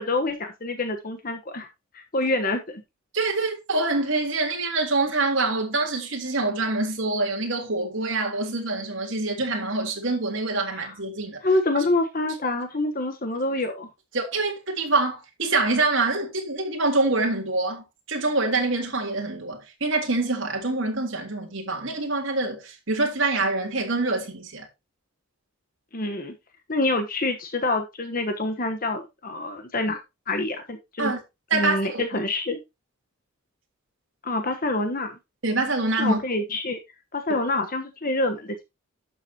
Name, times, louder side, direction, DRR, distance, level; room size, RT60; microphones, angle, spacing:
voice 1, 0.0-1.7 1.9-2.8 10.8-10.9 11.4-13.9 25.9-26.3 26.7-30.0 30.3-31.1 31.5-32.6 34.2-35.2 36.0-36.8 37.1-38.6, left 2 dB, 40° left, 1.1 m, -26 dB
voice 2, 3.1-11.4 14.1-24.7 31.0-31.2 31.5-32.0 35.4-36.2, right 3 dB, 55° right, 3.5 m, -25 dB
11.5 x 7.5 x 2.9 m
head